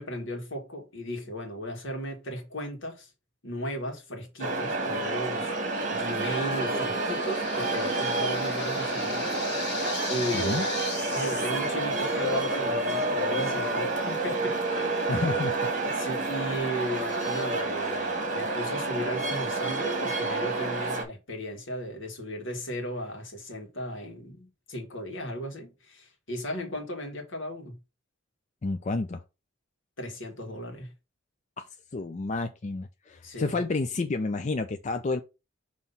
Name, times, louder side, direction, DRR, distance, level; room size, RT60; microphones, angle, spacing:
voice 1, 0.0-3.1 3.4-5.5 5.9-9.3 10.1-10.7 11.1-15.0 16.0-27.8 30.0-30.9 33.2-33.6, equal, 75° left, 1.7 m, -36 dB
sound 1, 4.4-21.0, right 2 dB, 40° right, 1.6 m, -29 dB
sound 2, 5.7-11.6, left 5 dB, 55° left, 1.6 m, -39 dB
voice 2, 10.3-10.7 15.1-15.6 28.6-29.2 31.6-31.7 31.9-35.2, left 3 dB, 35° left, 0.4 m, -30 dB
5.5 x 3.1 x 5.5 m
head